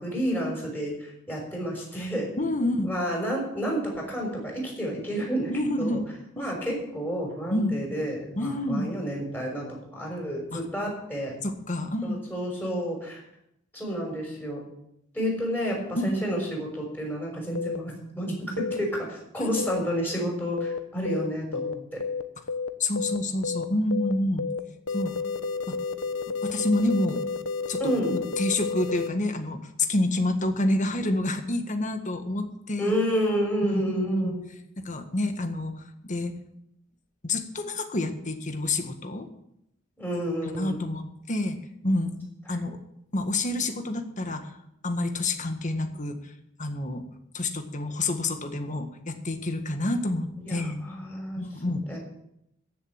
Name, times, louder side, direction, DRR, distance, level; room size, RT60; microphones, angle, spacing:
voice 1, 0.0-2.3 2.6-5.5 5.8-6.0 6.4-11.3 12.0-13.2 13.7-14.6 15.1-22.0 27.8-28.2 32.8-34.4 40.0-40.8 50.5-51.4 51.9-52.0, equal, 10° left, -2 dB, 6.1 m, -30 dB
voice 2, 2.4-2.9 5.5-6.1 6.4-6.5 7.5-7.8 8.3-8.9 10.5-10.6 11.4-12.2 16.0-16.1 19.4-19.6 22.8-24.4 24.9-25.1 25.7-25.8 26.3-27.2 27.7-27.8 28.4-32.9 33.6-34.4 34.8-36.3 37.2-39.3 40.1-41.6 41.8-42.2 42.5-42.8 43.1-44.5 44.8-46.3 46.6-47.1 47.3-50.8 51.4-51.9, left 1 dB, 40° left, 7 dB, 1.6 m, -28 dB
sound 1, 17.6-17.8 18.6-18.8 19.6-19.8 20.6-20.8 21.0-21.3 21.5-21.7 22.0-22.2 22.5-22.7 23.0-23.2 23.4-23.6 23.9-24.1 24.4-24.6 24.9-29.1, left 4 dB, 90° left, 0.9 m, -31 dB
14.5 x 7.3 x 8.8 m, 0.79 s
head